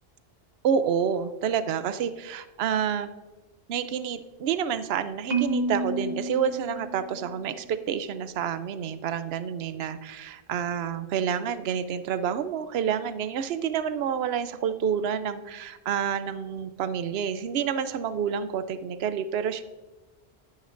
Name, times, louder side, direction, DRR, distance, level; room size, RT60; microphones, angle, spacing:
voice 1, 0.6-3.1 3.7-19.6, right 8 dB, 75° right, 12 dB, 0.8 m, -28 dB
Marimba xylophone, 5.3-7.5, right 3 dB, 45° right, 1.3 m, -30 dB
12.5 x 10.5 x 2.5 m, 1.2 s
omnidirectional pair, 1.1 m